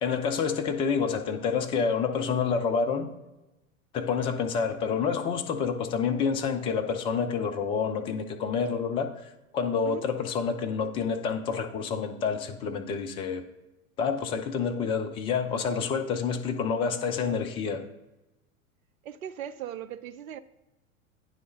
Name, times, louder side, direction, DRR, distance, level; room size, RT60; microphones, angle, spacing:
voice 1, 0.0-3.1 3.9-13.4 14.0-17.8, left 6 dB, 15° left, 0.3 m, -28 dB
voice 2, 19.0-20.4, right 10 dB, 75° right, 0.5 m, -38 dB
9.3 x 3.2 x 5.1 m
figure-of-eight pair, 85°, 42 cm